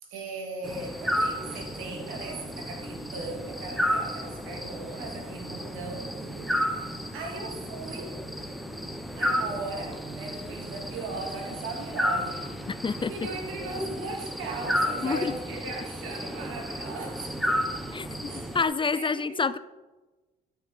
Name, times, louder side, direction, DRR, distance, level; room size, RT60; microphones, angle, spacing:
voice 1, 0.0-6.6 7.1-8.2 9.2-12.5 13.0-17.3 18.3-18.6 18.9-19.6, right 3 dB, 85° right, 1 dB, 2.0 m, -38 dB
sound 1, 0.6-18.7, equal, ahead, 1.0 m, -32 dB
voice 2, 12.7-13.1 15.0-15.3 17.9-19.6, left 5 dB, 25° left, 17 dB, 0.3 m, -28 dB
12.0 x 6.4 x 3.6 m, 1.2 s
supercardioid pair, 60°, 21 cm